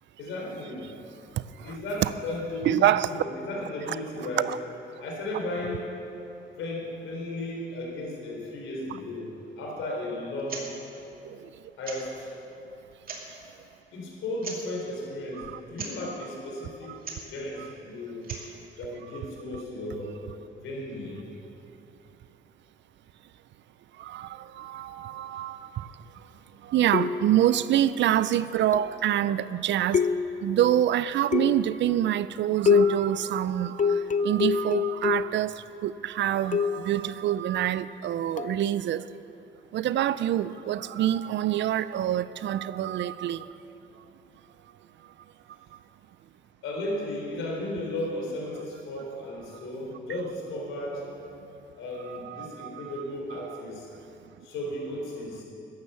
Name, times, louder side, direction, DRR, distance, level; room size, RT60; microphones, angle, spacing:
voice 1, 0.2-0.9 1.6-4.5 5.0-5.8 6.5-9.3 9.6-10.7 11.8-12.3 13.9-18.3 18.8-20.1 20.5-21.2 46.6-51.0 51.8-53.9 54.4-55.4, left 1 dB, 85° left, 4.0 m, -35 dB
voice 2, 2.7-3.1 4.5-4.6 11.2-11.4 15.4-15.6 16.9-17.0 24.0-25.9 26.6-30.0 30.4-35.5 35.8-39.0 39.7-43.5 52.1-52.9, right 12 dB, 65° right, 0.5 m, -26 dB
sound 1, 10.4-10.7 10.9-11.0 11.8-12.2 12.9-13.4 14.4-14.7 15.7-16.0 17.0-17.3 18.1-18.5, right 4 dB, 45° right, 2.6 m, -39 dB
sound 2, 26.9-27.5 28.7-29.1 29.9-30.5 31.3-31.8 32.7-33.1 33.8-35.4 36.5-36.9 38.4-38.6, left 6 dB, 40° left, 0.6 m, -25 dB
13.5 x 10.5 x 7.0 m
cardioid pair, 90°, 20 cm